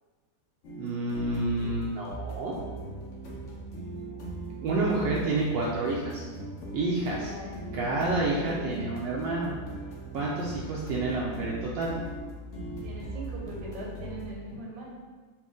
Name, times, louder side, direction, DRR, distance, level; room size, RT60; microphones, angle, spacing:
sound 1, 0.6-14.3, right 2 dB, 85° left, 0.6 m, -40 dB
voice 1, 0.8-2.5 4.6-6.3 6.7-7.3 7.7-9.5 10.1-11.9, right 2 dB, 75° right, -4 dB, 1.2 m, -29 dB
sound 2, 2.5-14.5, right 1 dB, 60° left, 1.0 m, -44 dB
voice 2, 7.2-8.9 12.8-15.0, right 1 dB, 55° right, -3 dB, 1.1 m, -41 dB
4.2 x 2.5 x 3.7 m, 1.4 s
omnidirectional pair, 2.2 m